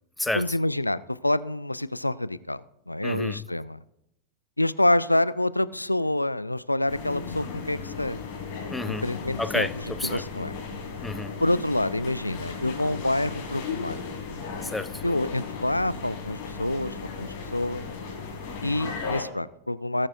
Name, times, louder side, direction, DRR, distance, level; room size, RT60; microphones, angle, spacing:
voice 1, 0.3-3.8 4.6-8.2 8.8-9.7 10.0-10.5 11.4-14.0 15.0-17.9 18.6-20.1, left 1 dB, 85° left, 0.3 m, -27 dB
voice 2, 3.0-3.4 8.7-9.1 9.4-10.2 11.0-11.4 14.6-15.0, left 2 dB, 5° left, 0.4 m, -30 dB
sound 1, 6.9-19.2, left 5 dB, 45° left, 3.3 m, -36 dB
18.5 x 8.6 x 2.5 m
figure-of-eight pair, 90°, 0 cm